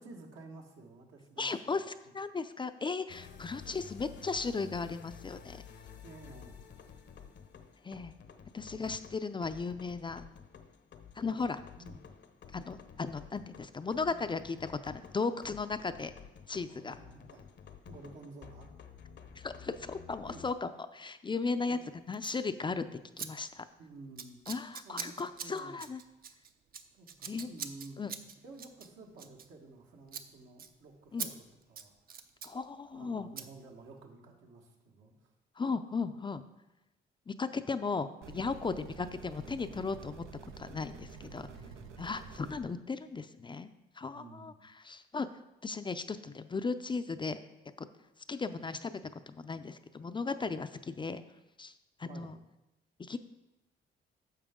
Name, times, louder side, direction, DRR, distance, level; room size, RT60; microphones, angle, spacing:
voice 1, 0.0-1.8 3.6-3.9 6.0-6.6 8.7-9.0 11.7-12.0 14.0-14.4 16.7-17.4 17.9-18.7 20.2-20.4 21.7-21.8 23.8-24.4 24.8-25.8 26.9-28.0 28.4-32.2 32.9-35.3 41.3-41.9 44.1-44.5 52.1-52.4, right 3 dB, 75° right, 1 dB, 1.6 m, -52 dB
voice 2, 1.4-5.6 7.8-8.1 8.5-10.2 11.2-11.6 12.5-16.1 16.5-17.0 19.4-22.9 23.2-23.6 24.5-26.0 27.3-27.5 28.0-28.1 31.1-31.3 32.4-33.3 35.6-36.4 37.3-40.2 40.6-41.5 42.0-43.7 44.0-45.3 45.6-47.4 47.8-47.9 48.3-48.9 49.3-51.2 51.6-51.7 52.0-52.4 53.0-53.2, left 4 dB, 25° left, 10 dB, 0.4 m, -36 dB
sound 1, 3.1-20.5, left 7 dB, 60° left, 0.8 m, -52 dB
Scissors, 22.1-22.4 23.2-23.3 23.5-23.8 24.2-29.8 30.1-30.3 30.6-30.7 31.2-31.3 31.6-32.5 33.4-33.5, right 7 dB, 50° right, 0.7 m, -43 dB
sound 2, 38.2-42.6, right 6 dB, 90° right, 0.8 m, -49 dB
10.0 x 6.7 x 3.7 m, 0.94 s
cardioid pair, 90°, 20 cm